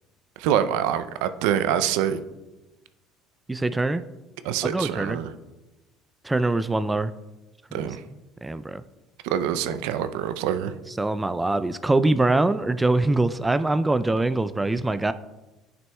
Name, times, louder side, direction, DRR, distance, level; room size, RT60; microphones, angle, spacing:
voice 1, 0.4-2.2 4.4-5.3 7.7-8.0 9.2-10.7, right 10 dB, 80° right, 11 dB, 0.4 m, -25 dB
voice 2, 3.5-4.0 4.6-5.2 6.2-7.1 8.4-8.8 11.0-15.1, right 2 dB, 10° right, 13 dB, 0.3 m, -23 dB
10.5 x 6.1 x 2.3 m, 1.1 s
supercardioid pair, 95°, 0 cm